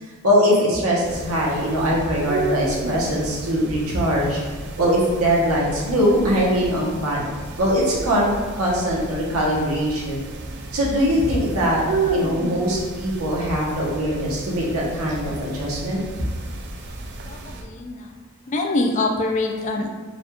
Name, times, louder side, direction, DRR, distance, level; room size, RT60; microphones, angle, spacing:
voice 1, 0.2-4.4 4.8-10.2 10.7-11.8 12.1-16.0, equal, 85° right, -4 dB, 0.9 m, -21 dB
sound 1, 1.0-17.6, right 3 dB, 55° right, 0.4 m, -32 dB
voice 2, 17.3-18.1 18.5-19.9, left 2 dB, 35° left, 3 dB, 0.4 m, -24 dB
4.1 x 2.3 x 3.0 m, 1.5 s
head